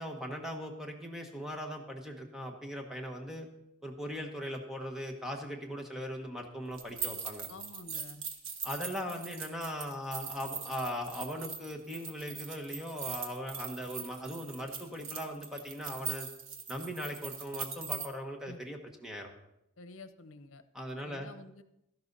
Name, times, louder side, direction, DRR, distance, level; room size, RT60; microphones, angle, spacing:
voice 1, 0.0-3.5 3.8-7.5 8.6-16.3 16.7-19.3 20.7-21.3, equal, ahead, 2 dB, 1.3 m, -39 dB
sound 1, 6.7-18.1, right 6 dB, 80° right, 1.4 m, -41 dB
voice 2, 7.5-8.2 18.5-18.6 19.8-20.6 21.0-21.6, left 2 dB, 90° left, 12 dB, 0.8 m, -49 dB
12.5 x 11.5 x 4.0 m, 0.85 s
head